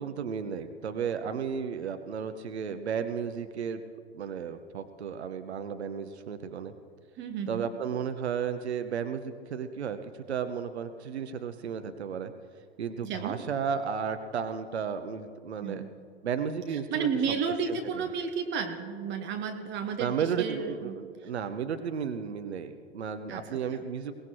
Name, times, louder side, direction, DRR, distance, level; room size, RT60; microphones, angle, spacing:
voice 1, 0.0-3.8 4.1-6.7 7.5-12.3 12.8-15.8 16.2-17.4 17.7-18.1 20.0-24.1, right 7 dB, 75° right, 9 dB, 1.0 m, -33 dB
voice 2, 7.2-7.7 13.0-13.4 15.6-15.9 16.7-21.0 21.2-21.3 23.3-23.4, right 6 dB, 35° right, 5 dB, 1.4 m, -32 dB
22.5 x 18.5 x 3.1 m, 2.2 s
figure-of-eight pair, 95°, 33 cm